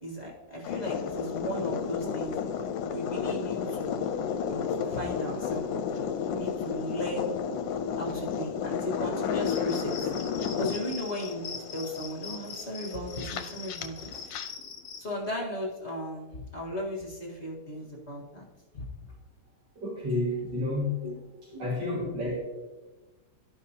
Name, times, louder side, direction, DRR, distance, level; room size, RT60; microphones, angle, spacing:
voice 1, 0.0-2.4 2.9-4.0 4.5-7.4 8.0-10.1 10.6-14.2 15.0-18.4 18.7-18.9 21.0-21.2 21.5-21.8, equal, 40° left, -2 dB, 1.7 m, -36 dB
sound 1, 0.6-14.5, left 7 dB, 85° left, 1.3 m, -32 dB
Cricket, 9.4-15.0, left 6 dB, 55° left, 1.2 m, -42 dB
voice 2, 19.8-21.0 21.6-22.4, left 2 dB, 70° right, -8 dB, 2.5 m, -30 dB
13.5 x 5.2 x 2.8 m, 1.2 s
omnidirectional pair, 2.0 m